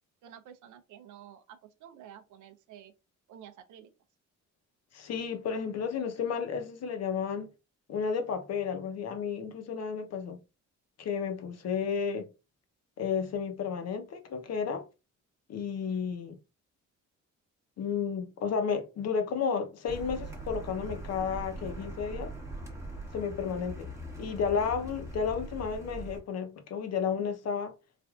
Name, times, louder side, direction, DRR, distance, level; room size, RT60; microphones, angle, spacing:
voice 1, 0.2-2.9 3.3-3.9, right 9 dB, 80° right, 0.6 m, -51 dB
voice 2, 4.9-7.5 7.9-10.4 11.0-12.3 13.0-14.9 15.5-16.4 17.8-22.3 23.1-23.9 24.2-27.7, left 6 dB, 55° left, 0.7 m, -32 dB
Car, 19.9-26.2, right 1 dB, 10° right, 0.9 m, -41 dB
3.3 x 2.5 x 2.3 m
cardioid pair, 90°, 30 cm